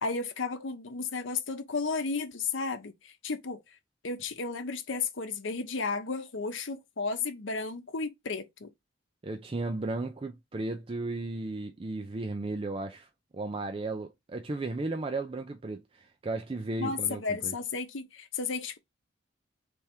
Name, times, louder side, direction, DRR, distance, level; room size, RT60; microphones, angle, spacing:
voice 1, 0.0-3.6 4.0-8.7 16.8-18.8, left 4 dB, 75° left, 0.8 m, -33 dB
voice 2, 9.2-13.1 13.3-17.5, right 2 dB, 30° right, 0.4 m, -35 dB
3.5 x 3.4 x 4.3 m
head